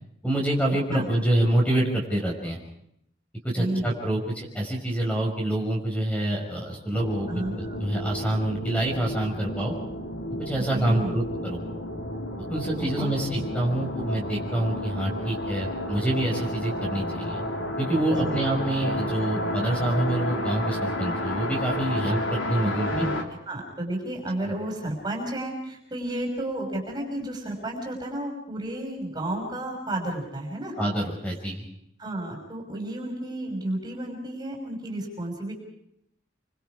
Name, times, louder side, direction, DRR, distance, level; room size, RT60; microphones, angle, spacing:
voice 1, 0.2-2.6 3.4-7.3 7.6-9.7 10.4-11.2 11.5-11.6 12.5-17.4 17.8-23.1 30.8-31.7, right 1 dB, 5° left, 0 dB, 5.7 m, -26 dB
voice 2, 3.5-3.9 7.3-7.8 10.7-11.2 12.8-13.4 18.1-18.4 22.6-23.1 23.5-30.7 32.0-35.5, right 1 dB, 20° right, 1 dB, 5.9 m, -32 dB
sound 1, 6.9-23.2, left 1 dB, 90° left, 3.5 m, -31 dB
29.5 x 25.0 x 4.9 m, 0.75 s
head